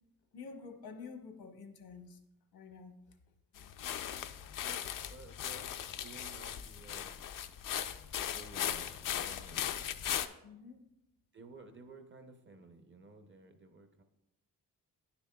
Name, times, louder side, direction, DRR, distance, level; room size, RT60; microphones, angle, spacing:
voice 1, 0.3-2.2 2.5-2.9 10.4-10.8, left 5 dB, 80° left, 5 dB, 1.0 m, -48 dB
sound 1, 3.6-10.3, left 10 dB, 65° left, 0.5 m, -38 dB
voice 2, 4.6-7.2 8.3-9.7 11.3-14.0, right 3 dB, 35° right, 7 dB, 0.6 m, -54 dB
9.9 x 6.9 x 2.2 m, 0.88 s
wide cardioid pair, 115°, 36 cm